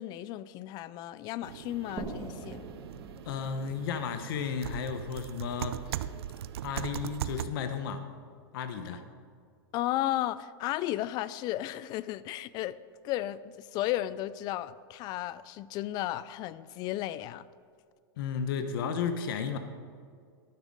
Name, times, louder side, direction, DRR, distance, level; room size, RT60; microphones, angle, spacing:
voice 1, 0.0-2.6 9.7-12.8 13.0-17.4, left 14 dB, 35° left, 17 dB, 0.3 m, -34 dB
sound 1, 1.4-7.5, right 11 dB, 85° right, 0.4 m, -39 dB
sound 2, 2.0-5.5, right 2 dB, 10° right, 1.3 m, -44 dB
voice 2, 3.2-6.0 6.6-8.1 8.5-9.0 18.2-19.6, left 6 dB, 65° left, 8 dB, 0.9 m, -33 dB
12.0 x 6.4 x 5.2 m, 2.1 s
supercardioid pair, 140°, 13 cm